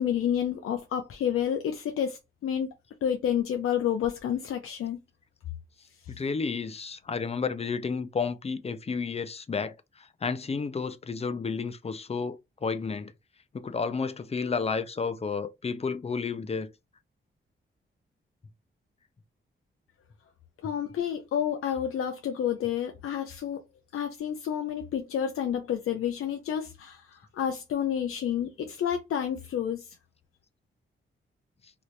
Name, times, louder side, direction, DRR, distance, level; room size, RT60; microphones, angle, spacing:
voice 1, 0.0-2.7 3.0-5.0 20.6-23.6 23.9-30.0, left 9 dB, 85° left, 0.5 m, -29 dB
voice 2, 6.2-13.1 13.5-16.7, left 5 dB, 30° left, 0.5 m, -31 dB
2.9 x 2.5 x 3.1 m
cardioid pair, 80°, 21 cm